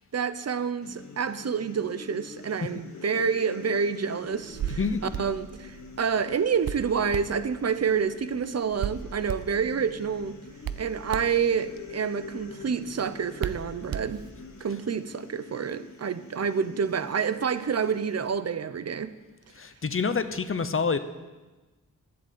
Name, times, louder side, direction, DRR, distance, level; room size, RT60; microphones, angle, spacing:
voice 1, 0.1-4.8 5.2-10.4 10.8-14.2 14.6-19.1, right 6 dB, 45° right, 0.7 m, -28 dB
sound 1, 0.8-18.3, left 3 dB, 55° left, 1.7 m, -46 dB
Hands, 4.3-14.6, right 9 dB, 85° right, 0.7 m, -38 dB
voice 2, 4.8-5.1 19.5-21.0, left 5 dB, 40° left, 0.8 m, -27 dB
11.5 x 7.9 x 9.3 m
wide cardioid pair, 95°, 34 cm